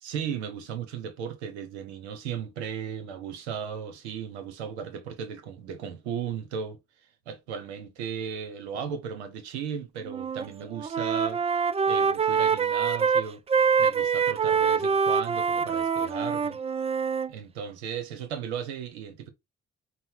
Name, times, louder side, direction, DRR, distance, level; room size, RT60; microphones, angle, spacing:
voice 1, 0.0-6.8 7.3-11.4 11.9-13.4 13.8-16.6 17.3-19.3, right 7 dB, 80° right, 0.8 m, -36 dB
Wind instrument woodwind instrument, 10.0-10.5 10.8-17.3, right 6 dB, 20° right, 0.4 m, -25 dB
5.3 x 2.0 x 4.2 m
figure-of-eight pair, 40°, 33 cm